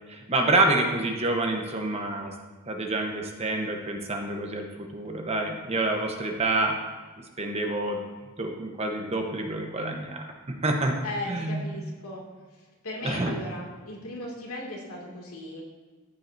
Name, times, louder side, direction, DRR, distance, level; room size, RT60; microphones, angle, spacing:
voice 1, 0.0-2.3 2.7-6.7 7.2-11.0 11.3-11.7 13.0-13.3, right 2 dB, 30° right, 3 dB, 1.0 m, -28 dB
voice 2, 11.0-12.2 12.8-15.6, left 1 dB, 90° left, -2 dB, 2.3 m, -36 dB
14.0 x 7.5 x 2.7 m, 1.3 s
head